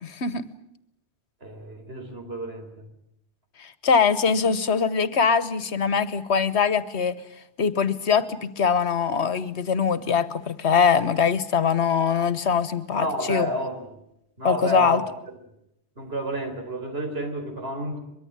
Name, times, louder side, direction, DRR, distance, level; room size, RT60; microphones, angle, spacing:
voice 1, 0.0-0.4 3.6-7.1 7.6-13.5 14.4-15.0, left 6 dB, 85° left, 15 dB, 1.4 m, -22 dB
voice 2, 1.4-2.9 13.0-13.9 14.4-15.4 16.0-18.0, equal, 65° right, 6 dB, 4.3 m, -30 dB
23.5 x 23.0 x 8.8 m, 0.79 s
omnidirectional pair, 1.1 m